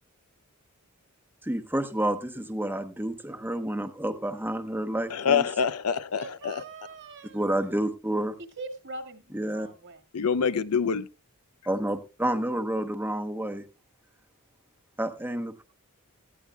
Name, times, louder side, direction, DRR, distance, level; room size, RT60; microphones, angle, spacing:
voice 1, 1.4-5.4 7.3-8.3 9.3-9.7 11.7-13.6 15.0-15.6, right 1 dB, 10° right, 1.0 m, -29 dB
voice 2, 5.1-6.6 10.1-11.1, left 6 dB, 85° left, 0.6 m, -26 dB
voice 3, 6.2-7.5 8.6-10.0, right 2 dB, 60° right, 2.0 m, -42 dB
17.5 x 14.0 x 2.3 m
head